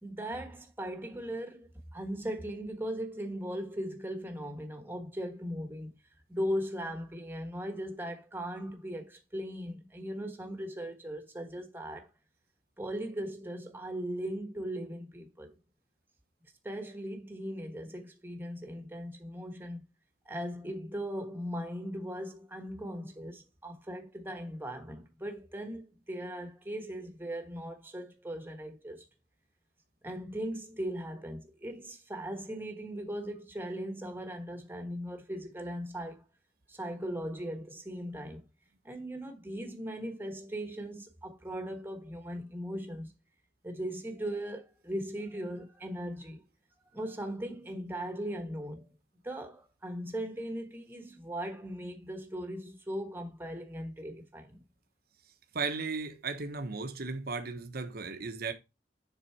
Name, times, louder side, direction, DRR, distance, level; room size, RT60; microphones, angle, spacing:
voice 1, 0.0-6.0 6.3-12.1 12.8-15.5 16.6-19.8 20.2-25.8 26.1-29.0 30.0-36.2 36.7-38.4 38.8-43.1 43.6-46.4 46.9-48.9 49.2-54.6, equal, 10° right, 1.3 m, -38 dB
voice 2, 55.5-58.5, right 4 dB, 60° right, 1.0 m, -35 dB
7.0 x 3.9 x 4.5 m
head